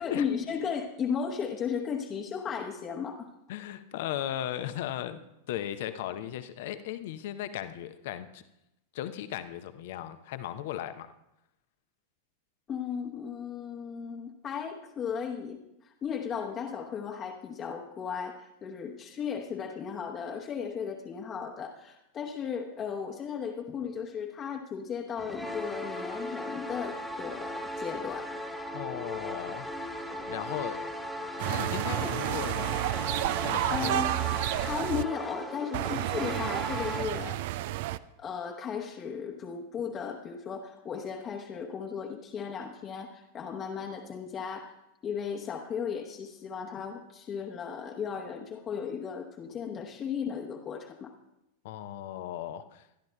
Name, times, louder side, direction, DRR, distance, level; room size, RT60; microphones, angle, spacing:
voice 1, 0.0-3.3 12.7-15.6 15.8-28.3 31.9-32.2 33.7-34.2 34.6-37.5 38.2-44.8 45.0-51.1, left 6 dB, 30° left, 0 dB, 1.0 m, -35 dB
voice 2, 3.5-8.4 8.9-11.1 28.7-29.7 30.3-30.9 31.2-32.8 33.4-34.0 51.6-52.8, left 12 dB, 50° left, 11 dB, 0.7 m, -37 dB
sound 1, 25.2-37.1, equal, ahead, 1.3 m, -37 dB
sound 2, 31.4-35.0 35.7-38.0, right 15 dB, 50° right, 0.3 m, -31 dB
25.0 x 11.5 x 2.3 m, 0.87 s
figure-of-eight pair, 90°, 0 cm